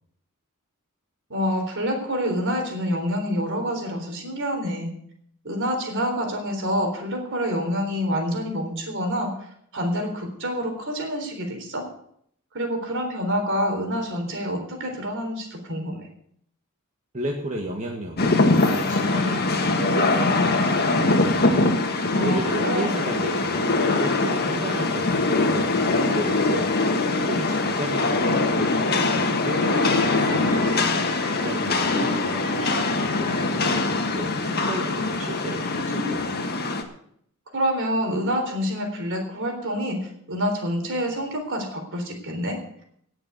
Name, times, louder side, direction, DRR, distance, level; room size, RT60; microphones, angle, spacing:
voice 1, 1.3-4.9 5.4-9.3 9.7-11.8 12.5-16.1 22.1-23.0 37.5-42.6, equal, 60° right, 4 dB, 3.8 m, -27 dB
voice 2, 17.1-21.6 22.2-26.7 27.1-30.7 31.4-36.4, right 1 dB, 35° right, 0 dB, 1.7 m, -33 dB
Rain, 18.2-36.8, left 3 dB, 45° left, 1.7 m, -22 dB
18.5 x 6.9 x 6.9 m, 0.68 s
head